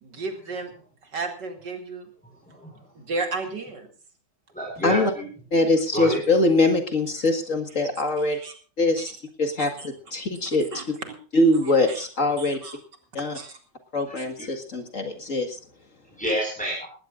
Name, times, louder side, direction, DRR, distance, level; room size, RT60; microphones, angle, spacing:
voice 1, 0.0-0.7 1.1-2.1 3.0-3.9 8.3-8.5 9.0-9.1 9.6-9.7 10.7-11.1 11.6-12.0 12.4-12.8 13.3-13.6, right 3 dB, 70° right, 5 dB, 3.2 m, -33 dB
voice 2, 2.5-2.8 4.5-5.3 5.9-6.2 14.1-14.2 16.1-16.9, equal, 5° left, -2 dB, 4.8 m, -29 dB
voice 3, 5.5-8.4 8.8-9.1 9.4-11.0 11.3-12.6 13.1-13.4 13.9-15.6, left 2 dB, 45° left, 6 dB, 2.1 m, -23 dB
19.5 x 17.0 x 2.5 m, 0.40 s
omnidirectional pair, 2.0 m